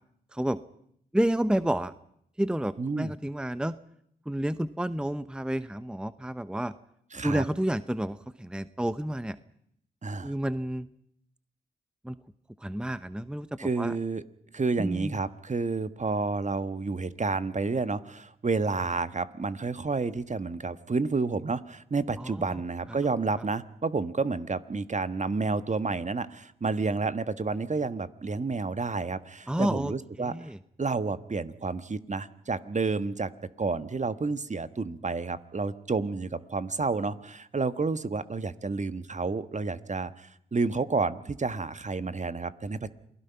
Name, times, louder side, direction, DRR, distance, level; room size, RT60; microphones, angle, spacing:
voice 1, 1.1-1.9 2.4-3.7 4.3-6.7 7.2-9.4 10.2-10.9 12.0-12.2 12.6-13.5 13.8-13.9 14.8-15.1 22.2-22.5 29.5-29.9 30.2-30.6, right 1 dB, 5° right, 14 dB, 0.9 m, -30 dB
voice 2, 2.8-3.1 7.1-7.4 10.0-10.3 13.6-14.2 14.5-30.4 30.8-33.3 33.6-42.9, right 4 dB, 40° right, 12 dB, 1.4 m, -30 dB
28.0 x 19.0 x 5.8 m, 0.70 s
supercardioid pair, 40°, 20 cm